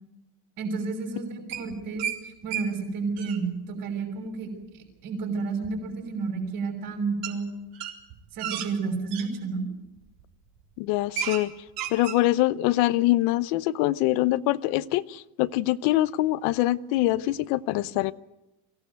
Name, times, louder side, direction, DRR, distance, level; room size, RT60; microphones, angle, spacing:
voice 1, 0.6-4.5 5.0-7.5 8.3-9.6, right 4 dB, 50° right, 5.9 m, -31 dB
sound 1, 1.5-2.2 2.5-2.7 3.0-3.4 5.6-5.7 7.2-7.4 7.7-9.3 10.0-10.2 10.6-10.7 10.9-11.4 11.7-12.2, right 9 dB, 70° right, 4.1 m, -33 dB
voice 2, 10.8-11.5 11.9-18.1, left 16 dB, 80° left, 0.9 m, -24 dB
23.5 x 17.0 x 9.3 m
cardioid pair, 150°, 43 cm